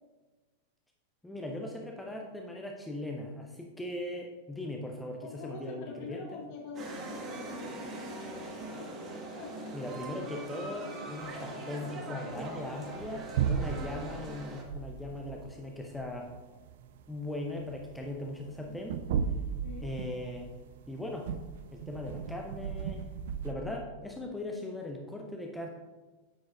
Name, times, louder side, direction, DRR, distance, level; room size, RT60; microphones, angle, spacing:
voice 1, 1.2-6.2 9.7-16.3 17.1-19.0 19.8-20.5 20.9-21.3 21.7-23.1 23.4-25.7, left 1 dB, 5° left, 0 dB, 0.6 m, -39 dB
voice 2, 5.2-8.9 9.4-9.8 13.6-14.1 18.5-18.8 19.6-19.9, left 4 dB, 45° left, 0 dB, 1.6 m, -46 dB
sound 1, 6.8-14.6, right 2 dB, 30° right, 1.3 m, -41 dB
sound 2, 12.3-23.5, right 7 dB, 55° right, 0.4 m, -36 dB
8.7 x 6.2 x 2.4 m, 1.3 s
figure-of-eight pair, 90°, 0 cm